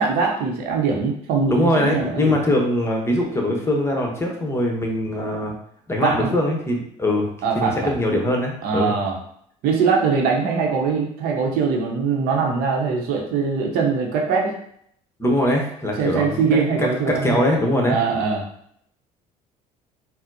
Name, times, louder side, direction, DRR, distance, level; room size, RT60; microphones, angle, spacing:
voice 1, 0.0-2.3 6.0-6.3 7.4-7.9 8.6-9.2 9.6-14.5 16.0-17.4 17.8-18.5, right 5 dB, 70° right, 1 dB, 0.7 m, -22 dB
voice 2, 1.5-5.5 5.9-7.3 7.5-8.9 15.2-16.4 16.8-18.0, left 1 dB, 15° left, 0 dB, 0.9 m, -22 dB
4.1 x 2.0 x 2.7 m, 0.67 s
supercardioid pair, 70°, 16 cm